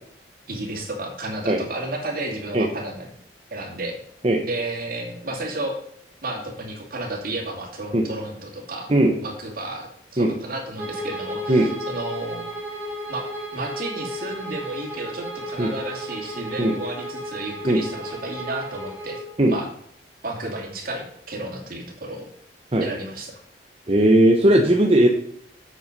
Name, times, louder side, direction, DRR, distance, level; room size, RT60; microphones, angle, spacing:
voice 1, 0.5-3.1 3.5-3.9 4.4-5.8 6.2-8.9 9.2-12.5 13.1-13.2 13.5-19.2 19.5-19.7 20.2-22.2 22.8-23.4, right 2 dB, 55° right, 0 dB, 2.7 m, -32 dB
Bowed string instrument, 10.7-19.3, equal, 15° right, 2.2 m, -34 dB
voice 2, 23.9-25.1, right 1 dB, 35° right, 2 dB, 1.0 m, -17 dB
8.2 x 8.0 x 5.3 m, 0.68 s
head